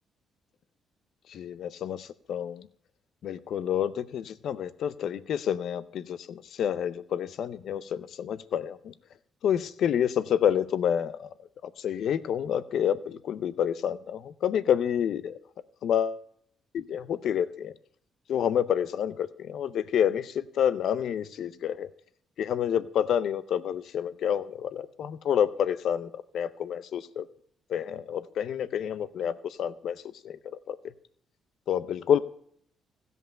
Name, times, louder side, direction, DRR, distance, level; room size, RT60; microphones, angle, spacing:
voice 1, 1.3-2.7 3.2-8.9 9.4-11.3 11.8-15.4 15.8-16.2 16.7-17.7 18.3-21.9 22.4-27.3 27.7-30.8 31.7-32.2, left 9 dB, 70° left, 15 dB, 0.5 m, -28 dB
15.5 x 5.5 x 5.5 m, 0.65 s
cardioid pair, 90°, 0 cm